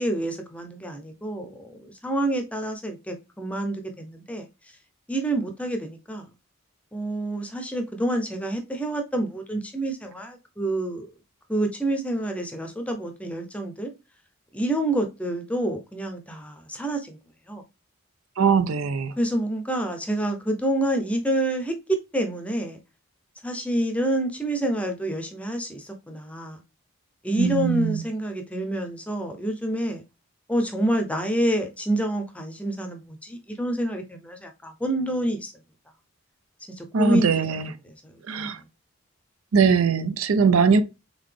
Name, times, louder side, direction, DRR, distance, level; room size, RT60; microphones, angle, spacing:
voice 1, 0.0-4.5 5.1-6.3 6.9-11.1 11.5-13.9 14.5-17.2 17.5-17.6 19.2-22.8 23.4-26.6 27.2-30.0 30.5-35.5 36.7-37.6 37.8-38.7, right 1 dB, 5° left, 0.6 m, -28 dB
voice 2, 18.4-19.1 27.4-28.0 36.9-37.7 38.3-38.6 39.5-40.8, right 5 dB, 80° right, 0.5 m, -21 dB
3.9 x 3.6 x 3.2 m
head